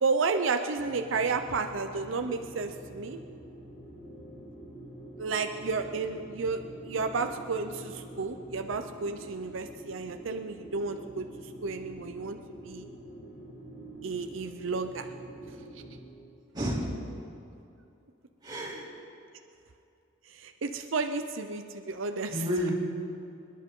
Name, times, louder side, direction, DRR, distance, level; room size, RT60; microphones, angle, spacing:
voice 1, 0.0-3.2 5.2-12.4 12.6-12.9 14.0-15.1 20.3-22.3, right 4 dB, 85° right, 6 dB, 0.6 m, -32 dB
sound 1, 0.8-16.0, right 1 dB, 55° left, 4.3 m, -46 dB
voice 2, 16.5-16.9 18.4-18.9 22.3-22.7, equal, 20° right, -6 dB, 3.0 m, -31 dB
25.5 x 11.0 x 3.8 m, 2.7 s
head